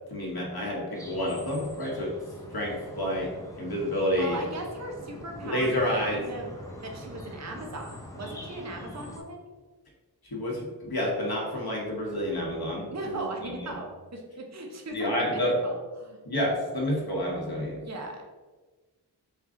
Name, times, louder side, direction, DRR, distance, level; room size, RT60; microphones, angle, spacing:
voice 1, 0.1-2.1 2.5-3.3 3.6-4.4 5.4-6.2 10.3-13.2 14.9-15.5 16.2-17.8, left 1 dB, 60° left, -3 dB, 1.2 m, -29 dB
sound 1, 0.9-9.2, equal, 10° left, 0.8 m, -44 dB
voice 2, 4.1-6.5 6.8-9.5 12.9-16.2 17.8-18.2, right 2 dB, 40° right, 1 dB, 0.7 m, -38 dB
4.5 x 2.4 x 3.7 m, 1.3 s
wide cardioid pair, 50°, 41 cm